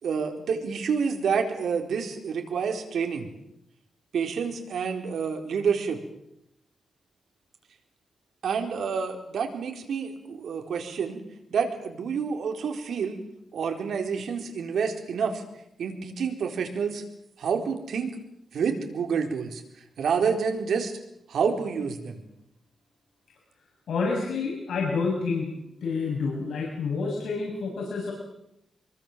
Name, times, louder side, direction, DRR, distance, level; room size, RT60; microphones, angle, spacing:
voice 1, 0.0-3.3 4.1-6.0 8.4-11.2 11.5-13.2 13.5-15.4 15.8-17.0 17.4-18.2 18.5-20.9 21.3-22.2, right 6 dB, 85° right, 4 dB, 4.3 m, -28 dB
voice 2, 23.9-25.5 25.8-28.1, left 4 dB, 85° left, -2 dB, 7.0 m, -28 dB
25.5 x 23.5 x 7.6 m, 0.80 s
wide cardioid pair, 125°, 0 cm